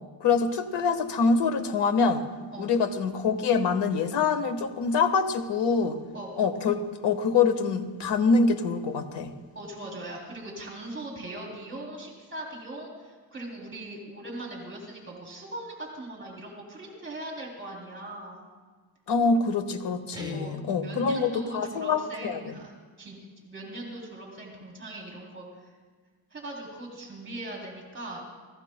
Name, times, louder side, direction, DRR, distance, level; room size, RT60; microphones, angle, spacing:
voice 1, 0.2-2.2 2.6-6.0 6.4-9.3 19.1-22.5, left 4 dB, 70° left, 8 dB, 1.5 m, -25 dB
voice 2, 9.5-18.5 20.3-22.7 23.0-25.7 26.3-28.2, right 1 dB, 25° right, -2 dB, 3.0 m, -40 dB
Guitar, 20.1-20.9, left 1 dB, 10° right, 0.8 m, -38 dB
30.0 x 17.0 x 2.2 m, 1.5 s
wide cardioid pair, 165°, 43 cm